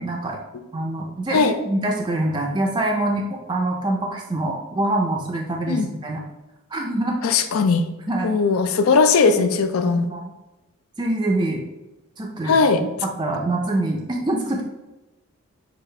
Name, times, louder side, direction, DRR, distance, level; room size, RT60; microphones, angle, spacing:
voice 1, 0.0-0.4 0.7-3.2 3.5-6.2 6.7-7.2 8.1-8.3 9.3-9.4 9.9-10.2 11.0-11.6 12.2-14.6, right 1 dB, 20° right, 0 dB, 0.4 m, -25 dB
voice 2, 7.2-7.9 8.2-10.1 12.4-12.8, left 4 dB, 70° left, 8 dB, 0.4 m, -18 dB
6.3 x 2.4 x 3.2 m, 1.0 s
head